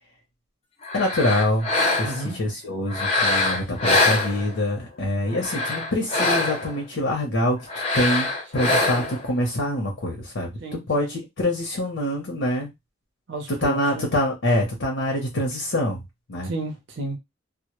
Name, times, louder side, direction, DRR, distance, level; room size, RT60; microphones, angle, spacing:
sound 1, 0.8-2.3 2.9-4.8 5.3-6.8 7.7-9.3, left 2 dB, 30° left, 0.6 m, -24 dB
voice 1, 0.9-1.7 2.0-7.6 7.9-12.7 13.6-16.0 16.3-16.5, left 1 dB, 85° left, 0.7 m, -25 dB
voice 2, 2.0-2.4 8.5-9.1 10.6-11.1 13.3-14.1 16.4-17.2, right 2 dB, 65° right, 0.6 m, -33 dB
2.1 x 2.0 x 2.9 m
head